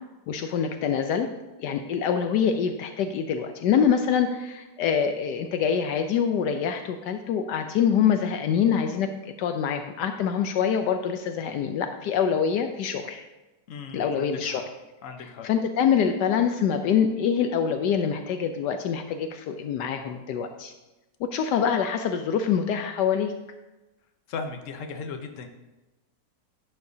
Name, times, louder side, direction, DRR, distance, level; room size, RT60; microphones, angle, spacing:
voice 1, 0.3-1.3 1.6-13.2 13.9-14.6 15.4-20.7 21.2-23.3, left 7 dB, 75° left, 6 dB, 1.2 m, -25 dB
voice 2, 13.7-14.6 15.0-15.5 24.3-25.5, left 4 dB, 55° left, 6 dB, 1.1 m, -37 dB
11.5 x 9.7 x 2.7 m, 1.0 s
omnidirectional pair, 1.9 m